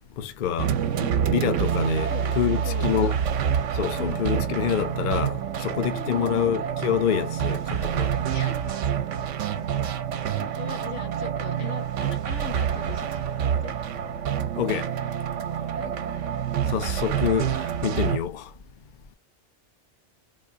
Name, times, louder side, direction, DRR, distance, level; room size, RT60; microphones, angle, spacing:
voice 1, 0.2-0.7 1.3-3.1 3.7-8.1 14.6-14.9 16.7-18.5, left 9 dB, 50° left, 0.6 m, -27 dB
sound 1, 0.6-18.2, right 9 dB, 85° right, 1.0 m, -27 dB
sound 2, 1.6-4.5, right 6 dB, 60° right, 0.7 m, -29 dB
voice 2, 2.6-3.2 4.0-4.5 5.9-6.5 8.1-8.9 10.2-13.8 15.8-16.3, left 8 dB, 80° left, 1.1 m, -40 dB
3.9 x 2.8 x 2.5 m
omnidirectional pair, 1.2 m